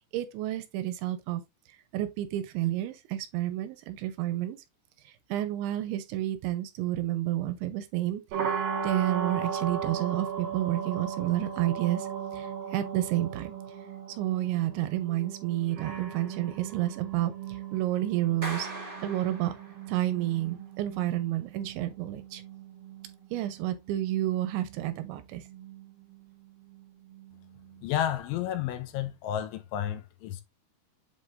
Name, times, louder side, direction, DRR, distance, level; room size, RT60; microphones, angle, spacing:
voice 1, 0.1-1.4 1.9-4.6 5.1-8.6 8.8-13.5 14.1-19.5 19.9-22.4 23.3-25.4, right 14 dB, 85° right, 3.0 m, -30 dB
sound 1, 8.3-28.1, right 7 dB, 55° right, 3.3 m, -38 dB
Clapping, 18.4-20.1, right 2 dB, 40° right, 0.7 m, -40 dB
voice 2, 27.8-30.4, left 11 dB, 80° left, 3.2 m, -31 dB
7.7 x 5.4 x 2.5 m
omnidirectional pair, 5.5 m